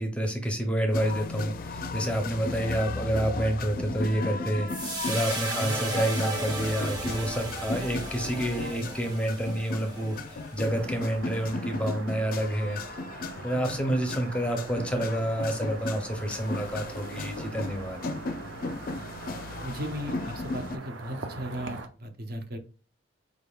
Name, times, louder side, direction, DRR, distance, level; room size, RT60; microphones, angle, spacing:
voice 1, 0.0-10.2 10.5-12.8 13.4-18.0, right 1 dB, 5° left, 4 dB, 0.6 m, -29 dB
sound 1, 0.9-20.8, left 3 dB, 50° left, 0.4 m, -36 dB
sound 2, 4.7-11.1, right 1 dB, 25° right, 1.2 m, -35 dB
voice 2, 5.5-5.8 19.6-22.6, equal, 55° right, 6 dB, 0.7 m, -36 dB
sound 3, 10.6-21.9, right 3 dB, 90° right, 0.6 m, -43 dB
5.0 x 3.5 x 2.3 m, 0.35 s
head